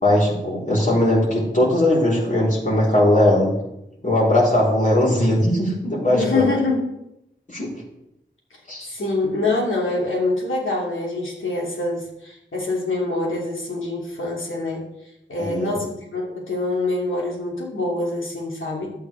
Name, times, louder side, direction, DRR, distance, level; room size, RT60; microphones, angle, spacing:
voice 1, 0.0-3.5 4.0-6.5 7.5-7.7 8.7-8.9 15.4-15.8, left 1 dB, 40° left, -5 dB, 3.9 m, -19 dB
voice 2, 6.1-6.8 8.9-14.8 15.3-18.9, left 2 dB, 80° left, -3 dB, 2.7 m, -25 dB
11.5 x 8.5 x 3.4 m, 0.86 s
wide cardioid pair, 60°, 20 cm